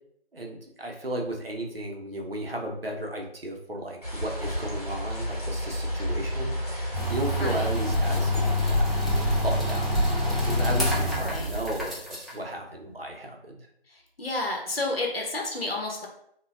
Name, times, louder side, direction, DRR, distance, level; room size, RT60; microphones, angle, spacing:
voice 1, 0.3-9.9 10.2-13.7, right 1 dB, 65° right, 1 dB, 0.7 m, -35 dB
sound 1, 4.0-9.5, equal, 40° left, 0.8 m, -33 dB
sound 2, 6.9-12.3, left 1 dB, ahead, 0.4 m, -25 dB
voice 2, 7.4-7.7 8.0-8.1 11.2-11.5 13.9-16.1, left 2 dB, 70° left, 0 dB, 0.8 m, -31 dB
3.3 x 2.2 x 2.4 m, 0.70 s
figure-of-eight pair, 170°, 31 cm